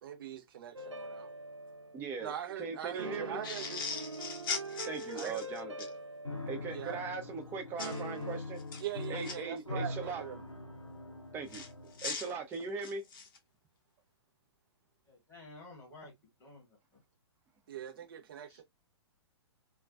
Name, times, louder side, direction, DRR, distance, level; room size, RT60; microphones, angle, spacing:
voice 1, 0.0-1.4 2.2-3.8 5.1-5.4 6.7-7.0 8.8-10.4 17.7-18.6, right 10 dB, 50° right, 0.8 m, -42 dB
sound 1, 0.7-2.1 3.0-6.9 7.8-8.4, right 1 dB, 85° right, 0.5 m, -43 dB
voice 2, 1.9-3.4 4.9-6.0 6.5-8.6 9.1-10.2 11.3-11.6 12.0-13.0, right 4 dB, 15° right, 0.5 m, -40 dB
sound 2, 3.4-5.9 7.8-8.0 8.6-9.3 11.5-13.4, left 5 dB, 45° left, 0.6 m, -40 dB
Piano, 6.2-12.2, left 2 dB, 90° left, 0.6 m, -43 dB
voice 3, 15.1-16.1 16.4-17.0 18.5-18.6, left 2 dB, 15° left, 1.1 m, -53 dB
2.4 x 2.2 x 2.4 m
figure-of-eight pair, 115°, 15 cm